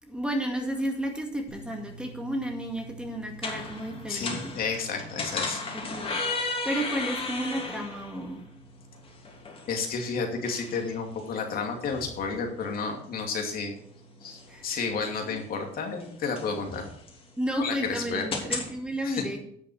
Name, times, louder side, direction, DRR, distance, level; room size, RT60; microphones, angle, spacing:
voice 1, 0.0-4.5 5.9-6.2 6.6-8.4 14.5-14.7 15.3-15.4 17.4-19.4, right 1 dB, 5° right, 2 dB, 2.2 m, -32 dB
sound 1, 1.5-18.7, left 3 dB, 35° left, 3.1 m, -37 dB
voice 2, 4.1-5.6 9.7-13.7 14.2-16.9 17.6-18.3 19.0-19.3, left 5 dB, 60° left, 3 dB, 2.5 m, -31 dB
10.5 x 6.4 x 6.4 m, 0.66 s
cardioid pair, 110°, 17 cm